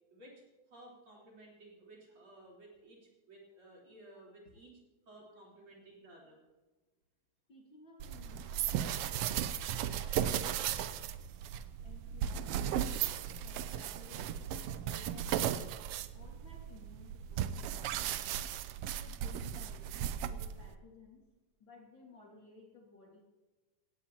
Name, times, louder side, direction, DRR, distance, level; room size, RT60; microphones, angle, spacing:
voice 1, 0.1-4.8 5.1-6.4, right 1 dB, 40° right, -4 dB, 4.6 m, -56 dB
voice 2, 7.5-11.1 11.8-13.0 13.4-14.4 14.9-15.7 16.1-18.3 18.9-21.2 21.6-23.2, left 3 dB, 40° left, -1 dB, 2.5 m, -58 dB
sound 1, 8.0-20.7, right 10 dB, 85° right, 1.3 m, -36 dB
17.0 x 17.0 x 3.0 m, 1.2 s
omnidirectional pair, 3.4 m